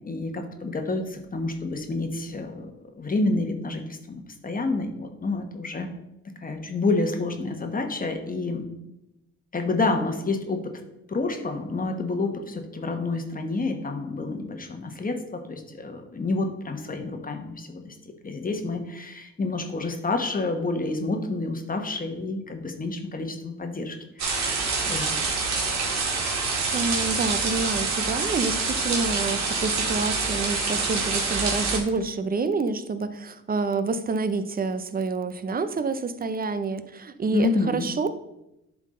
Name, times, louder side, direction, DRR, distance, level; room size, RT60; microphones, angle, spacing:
voice 1, 0.0-2.7 3.0-5.9 6.4-8.7 9.5-10.7 11.1-17.9 18.2-25.1 37.3-37.9, left 3 dB, 30° left, 5 dB, 1.2 m, -29 dB
sound 1, 24.2-31.8, right 4 dB, 65° right, 2.0 m, -26 dB
voice 2, 26.4-38.1, right 4 dB, 30° right, 11 dB, 0.6 m, -28 dB
11.0 x 3.7 x 3.8 m, 0.89 s
cardioid pair, 90°, 30 cm